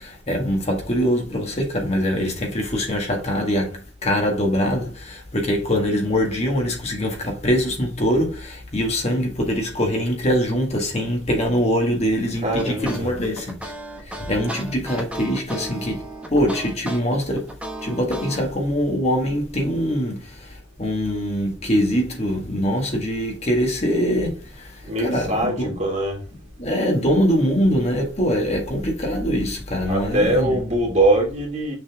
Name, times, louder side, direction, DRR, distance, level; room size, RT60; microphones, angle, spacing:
voice 1, 0.0-13.7 14.1-16.0 16.3-17.5 17.8-25.8 26.6-30.6, equal, 35° left, 1.8 m, -23 dB
voice 2, 12.4-13.1 24.8-26.2 29.9-31.8, right 1 dB, 40° right, 2.6 m, -22 dB
sound 1, 12.6-18.4, right 1 dB, 5° right, 1.1 m, -34 dB
6.6 x 4.2 x 3.6 m
head